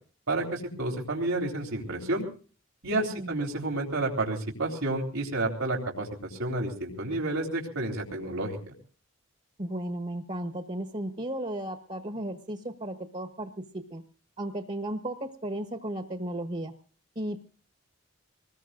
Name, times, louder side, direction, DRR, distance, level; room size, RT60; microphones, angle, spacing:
voice 1, 0.3-2.2 2.8-8.6, right 2 dB, 90° right, -1 dB, 3.6 m, -30 dB
voice 2, 9.6-14.0 14.4-16.7 17.1-17.4, right 1 dB, 35° right, 8 dB, 1.2 m, -35 dB
24.5 x 20.0 x 2.5 m, 0.40 s
head